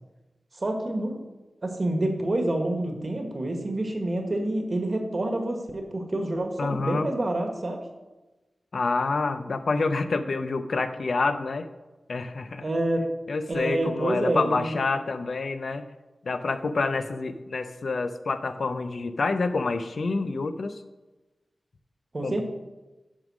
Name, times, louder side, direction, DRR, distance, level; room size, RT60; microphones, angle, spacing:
voice 1, 0.5-1.2 1.6-7.8 12.6-13.0 13.5-14.7 22.1-22.4, right 1 dB, 50° right, 3 dB, 1.4 m, -27 dB
voice 2, 6.6-7.1 8.7-11.7 12.1-12.6 13.3-15.8 16.2-20.8 22.2-22.4, left 3 dB, 75° left, 9 dB, 0.6 m, -27 dB
11.0 x 3.7 x 6.2 m, 1.1 s
wide cardioid pair, 70°, 0 cm